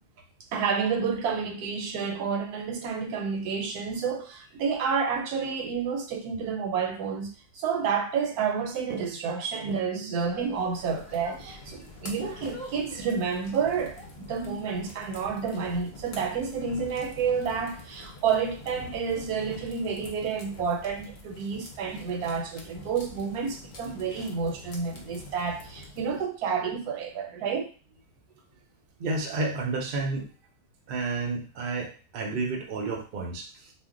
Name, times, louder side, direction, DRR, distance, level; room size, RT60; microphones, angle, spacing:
voice 1, 0.5-27.7, right 6 dB, 80° right, 1.1 m, -30 dB
sound 1, 10.2-15.3, equal, 15° right, 0.7 m, -49 dB
sound 2, 10.7-26.2, left 2 dB, 70° left, 0.4 m, -46 dB
voice 2, 29.0-30.3 30.9-33.7, right 3 dB, 55° right, 0.6 m, -31 dB
2.5 x 2.1 x 3.6 m
omnidirectional pair, 1.6 m